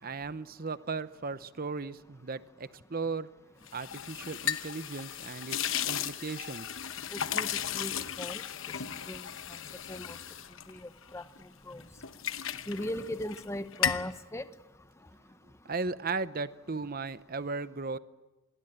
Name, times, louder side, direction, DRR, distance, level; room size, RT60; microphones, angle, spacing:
voice 1, 0.0-3.3 3.7-6.7 15.6-18.0, right 4 dB, 45° right, 14 dB, 0.8 m, -36 dB
sound 1, 3.7-11.4 11.8-13.5 13.7-14.1, left 9 dB, 70° left, 1.0 m, -35 dB
voice 2, 7.1-8.4 9.1-9.2 9.9-10.2 10.7-11.2 11.7-11.8 12.7-14.4, left 1 dB, 15° left, 11 dB, 1.0 m, -38 dB
26.0 x 20.5 x 9.0 m, 1.1 s
head